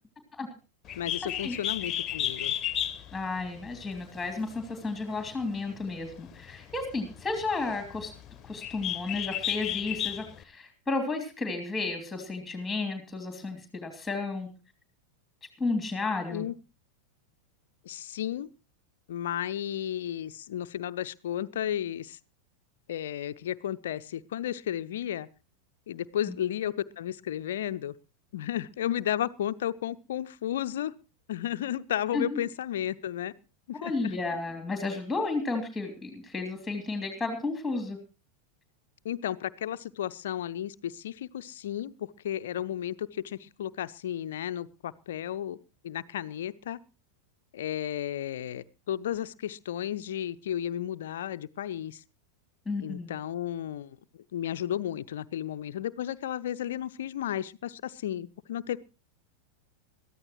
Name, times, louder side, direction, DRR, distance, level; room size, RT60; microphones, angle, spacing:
Bird, 0.9-10.4, left 11 dB, 30° left, 1.1 m, -35 dB
voice 1, 1.0-2.6 16.3-16.5 17.8-18.5 19.1-22.2 22.9-25.3 25.9-27.9 28.3-30.9 31.3-33.3 33.7-34.1 39.0-46.8 47.5-52.0 52.8-54.0 54.3-58.8, left 11 dB, 60° left, 14 dB, 0.6 m, -33 dB
voice 2, 3.1-8.1 8.4-14.5 15.6-16.4 26.3-26.4 32.1-32.4 33.8-38.0 52.6-53.1, left 3 dB, 5° left, 6 dB, 2.9 m, -32 dB
22.0 x 14.0 x 3.1 m, 0.32 s
figure-of-eight pair, 90°, 0 cm